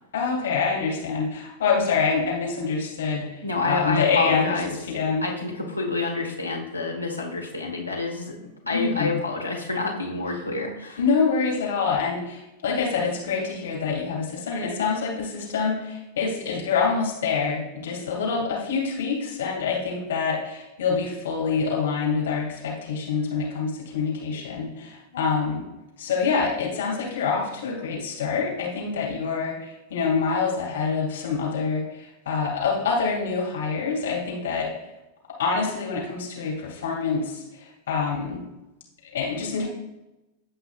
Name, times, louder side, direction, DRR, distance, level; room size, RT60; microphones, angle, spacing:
voice 1, 0.1-5.3 8.7-9.1 11.0-25.6 26.0-34.7 35.4-38.4 39.1-39.7, left 5 dB, 60° left, -3 dB, 2.4 m, -26 dB
voice 2, 3.4-4.7 5.2-8.4 8.7-11.0, left 3 dB, 85° left, -1 dB, 1.3 m, -28 dB
15.5 x 5.5 x 2.5 m, 0.97 s
figure-of-eight pair, 90°, 0 cm